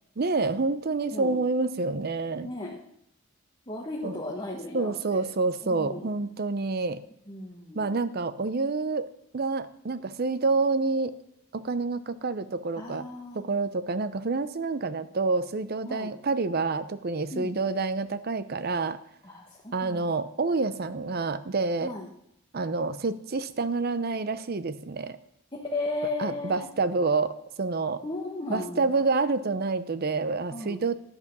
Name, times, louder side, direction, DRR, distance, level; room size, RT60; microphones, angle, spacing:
voice 1, 0.2-2.5 4.0-4.2 4.7-7.0 7.7-11.1 11.5-13.1 13.3-19.0 19.7-21.9 22.5-25.2 26.2-28.0 28.5-30.9, right 3 dB, 45° right, 14 dB, 0.6 m, -28 dB
voice 2, 1.1-1.4 2.4-2.8 3.7-5.2 5.6-6.1 7.3-7.9 12.7-13.4 15.9-16.1 17.3-17.6 19.2-20.1 21.8-22.1 25.5-26.7 28.0-28.9 30.5-30.8, left 2 dB, 25° left, -2 dB, 1.2 m, -35 dB
10.5 x 8.3 x 5.4 m, 0.75 s
head